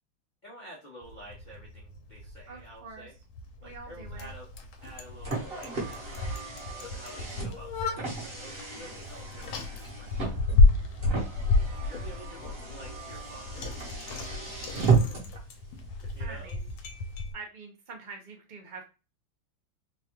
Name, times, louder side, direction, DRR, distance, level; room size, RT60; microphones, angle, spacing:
voice 1, 0.4-3.1 3.6-4.5 4.8-6.4 6.8-10.4 11.8-15.2 16.0-16.5, equal, 65° left, -4 dB, 0.4 m, -50 dB
Bicycle, 1.0-17.3, left 3 dB, 90° left, 1.4 m, -31 dB
voice 2, 2.5-3.1 3.6-4.3 10.5-11.0 16.2-16.7 17.3-18.9, right 4 dB, 70° right, 1 dB, 0.4 m, -45 dB
Car, 4.8-15.4, right 5 dB, 35° right, 1.1 m, -33 dB
4.4 x 2.3 x 2.9 m, 0.30 s
omnidirectional pair, 2.2 m